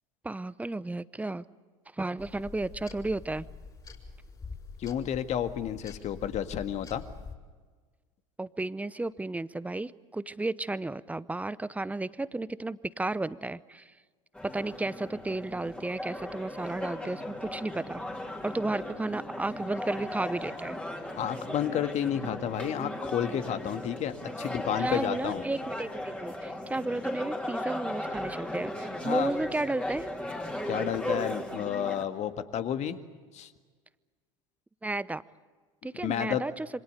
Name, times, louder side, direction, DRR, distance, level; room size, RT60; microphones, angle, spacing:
voice 1, 0.2-1.4 1.9-3.4 8.4-13.9 14.4-18.0 18.4-20.8 24.8-30.1 34.8-35.2 35.8-36.7, right 2 dB, 10° right, 18 dB, 0.8 m, -33 dB
sound 1, 2.2-7.4, left 4 dB, 25° left, 4.8 m, -45 dB
voice 2, 4.8-7.0 21.2-25.4 29.0-29.3 30.7-33.0 33.3-33.5 36.0-36.4, left 9 dB, 45° left, 9 dB, 1.9 m, -31 dB
sound 2, 14.3-32.0, left 1 dB, 5° left, 3.3 m, -37 dB
27.5 x 25.0 x 6.8 m, 1.5 s
hypercardioid pair, 75°, 17 cm